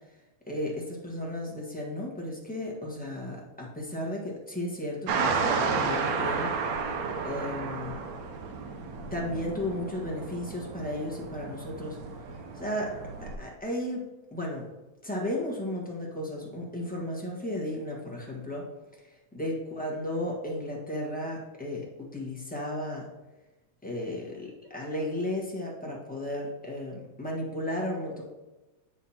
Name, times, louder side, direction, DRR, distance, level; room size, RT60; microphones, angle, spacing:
voice 1, 0.5-6.8 7.2-8.0 9.1-12.0 12.5-13.0 13.4-14.0 14.3-14.7 15.0-18.6 19.0-23.1 23.8-28.2, left 1 dB, 5° left, -3 dB, 1.1 m, -34 dB
sound 1, 5.1-13.4, right 5 dB, 65° right, 1.0 m, -32 dB
7.9 x 6.4 x 2.8 m, 1.1 s
omnidirectional pair, 2.0 m